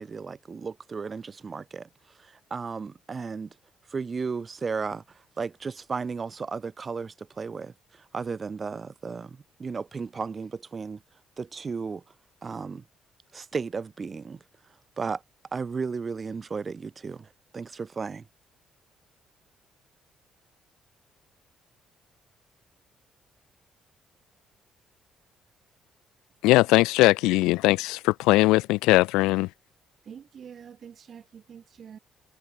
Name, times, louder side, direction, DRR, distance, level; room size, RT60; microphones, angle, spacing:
voice 1, 0.0-1.9 2.5-3.5 3.9-5.0 5.4-7.7 8.1-11.0 11.4-12.0 12.4-12.8 13.3-14.4 15.0-15.2 15.5-17.3 17.5-18.2, right 5 dB, 40° right, 1.4 m, -34 dB
voice 2, 26.4-29.5, left 20 dB, 85° left, 0.5 m, -20 dB
voice 3, 30.1-32.0, right 8 dB, 55° right, 1.5 m, -46 dB
supercardioid pair, 65°, 0 cm